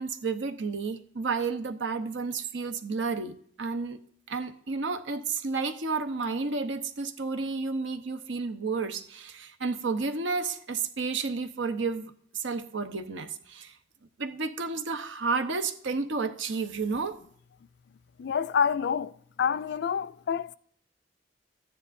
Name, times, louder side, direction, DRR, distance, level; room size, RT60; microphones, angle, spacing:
voice 1, 0.0-4.0 4.3-13.7 14.2-17.2, right 4 dB, 85° right, 0.8 m, -31 dB
voice 2, 18.2-20.5, left 7 dB, 65° left, 0.4 m, -28 dB
13.5 x 9.7 x 2.6 m
head